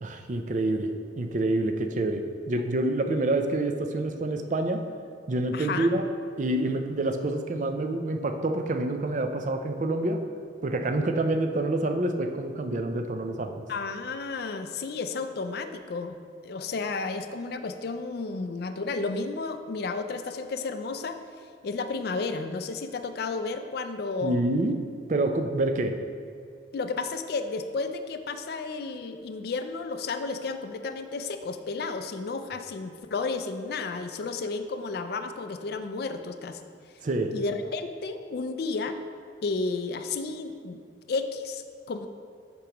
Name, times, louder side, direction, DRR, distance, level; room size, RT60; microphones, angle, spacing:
voice 1, 0.0-4.9 5.3-6.1 6.4-10.2 10.6-13.7 24.2-24.8 25.1-26.0 37.0-37.3, right 2 dB, 40° right, 6 dB, 0.5 m, -27 dB
voice 2, 5.5-5.9 13.7-16.2 16.4-21.2 21.6-24.4 26.7-36.7 37.3-39.0 39.4-40.8 41.1-42.1, left 4 dB, 55° left, 8 dB, 0.4 m, -32 dB
8.3 x 6.0 x 3.0 m, 2.2 s
head